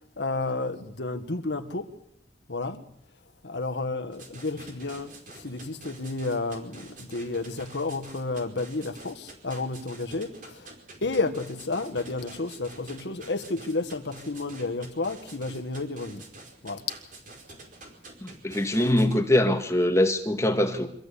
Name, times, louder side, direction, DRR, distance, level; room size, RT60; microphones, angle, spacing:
voice 1, 0.2-1.9 2.5-2.9 3.4-10.7 11.0-16.2 16.6-16.8, left 3 dB, 80° left, 1.7 m, -31 dB
sound 1, 4.1-19.2, right 2 dB, 50° right, 4.9 m, -47 dB
voice 2, 18.2-20.9, left 1 dB, 15° left, 1.9 m, -23 dB
25.5 x 15.0 x 8.4 m
head